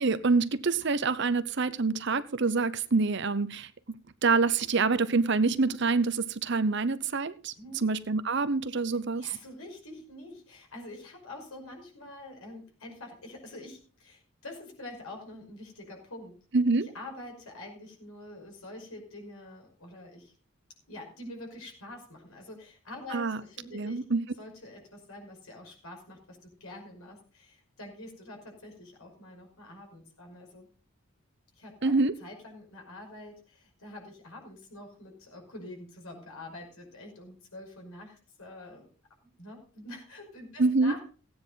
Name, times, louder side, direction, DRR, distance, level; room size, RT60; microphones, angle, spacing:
voice 1, 0.0-3.7 4.2-7.5 7.8-9.3 16.5-16.9 23.1-23.4 23.7-24.2 31.8-32.1 40.6-40.9, right 4 dB, 55° right, 0.8 m, -26 dB
voice 2, 9.2-16.4 16.9-20.3 20.9-24.0 24.4-30.7 31.6-31.9 32.2-38.9 39.4-41.0, left 1 dB, 85° left, 5.4 m, -46 dB
16.0 x 9.5 x 4.0 m
head